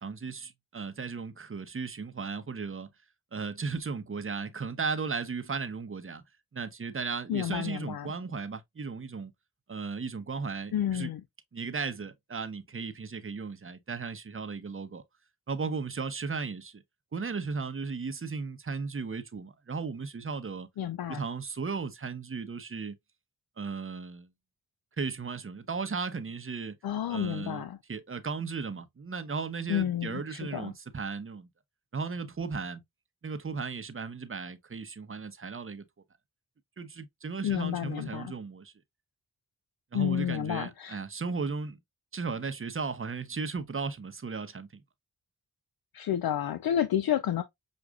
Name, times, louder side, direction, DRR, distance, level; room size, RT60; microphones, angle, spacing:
voice 1, 0.0-2.9 3.3-6.2 6.5-9.3 9.7-11.1 11.5-15.0 15.5-16.8 17.1-20.7 21.1-23.0 23.6-24.3 25.0-26.8 27.1-31.5 31.9-32.8 33.2-35.8 36.8-38.7 39.9-41.8 42.1-44.8, right 4 dB, 35° right, 0.8 m, -36 dB
voice 2, 7.3-8.1 10.7-11.2 20.8-21.2 26.8-27.8 29.7-30.7 37.4-38.3 39.9-41.0 45.9-47.4, left 10 dB, 70° left, 0.5 m, -30 dB
6.2 x 2.5 x 2.3 m
cardioid pair, 50°, 39 cm